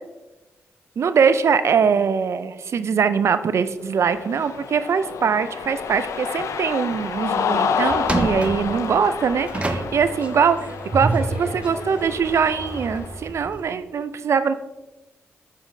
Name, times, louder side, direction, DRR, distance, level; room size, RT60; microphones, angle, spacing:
voice 1, 1.0-14.5, right 6 dB, 65° right, 12 dB, 0.3 m, -22 dB
Cheering, 3.9-13.2, left 6 dB, 85° left, 0.4 m, -29 dB
sound 1, 5.6-6.1 6.5-6.6 7.1-7.5 7.9-13.6, right 2 dB, 25° right, 0.6 m, -29 dB
7.0 x 5.6 x 2.6 m, 1.1 s
cardioid pair, 65°, 5 cm